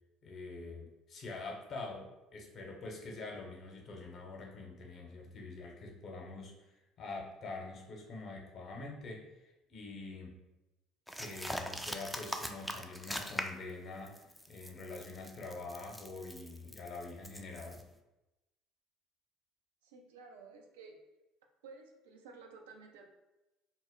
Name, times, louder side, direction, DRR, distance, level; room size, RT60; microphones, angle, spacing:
voice 1, 0.2-6.5 7.0-10.4 11.1-17.8, left 3 dB, 50° left, 0 dB, 0.7 m, -45 dB
sound 1, 11.1-13.7 14.1-17.8, equal, ahead, 0.3 m, -42 dB
voice 2, 19.8-21.0 21.6-23.1, right 4 dB, 85° right, 2 dB, 0.4 m, -53 dB
2.1 x 2.0 x 3.5 m, 0.99 s
hypercardioid pair, 65°, 0 cm